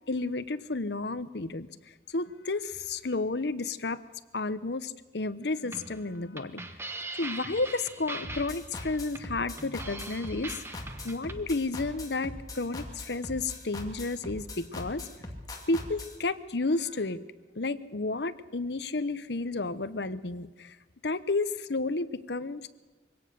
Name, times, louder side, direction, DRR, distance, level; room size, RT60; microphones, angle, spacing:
voice 1, 0.1-1.7 2.1-4.0 4.3-6.6 7.2-10.6 11.0-15.1 15.7-17.2 17.5-20.8 21.0-22.7, left 3 dB, 70° left, 13 dB, 0.9 m, -31 dB
sound 1, 5.6-11.5, right 2 dB, 15° right, 1.1 m, -41 dB
sound 2, 8.2-16.2, left 2 dB, 20° left, 2.4 m, -41 dB
23.0 x 17.0 x 6.7 m, 1.2 s
head